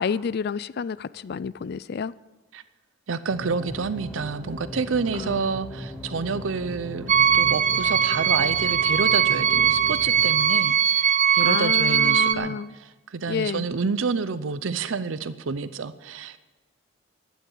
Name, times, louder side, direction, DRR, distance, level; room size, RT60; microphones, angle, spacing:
voice 1, 0.0-2.1 5.2-5.4 11.4-12.7 13.3-13.7, left 6 dB, 55° left, 19 dB, 0.4 m, -29 dB
voice 2, 3.1-16.4, right 5 dB, 90° right, 14 dB, 0.6 m, -29 dB
sound 1, 3.3-10.4, equal, 5° right, 1.8 m, -38 dB
sound 2, 7.1-12.3, right 8 dB, 40° right, 0.7 m, -20 dB
11.5 x 9.3 x 8.9 m, 1.2 s
head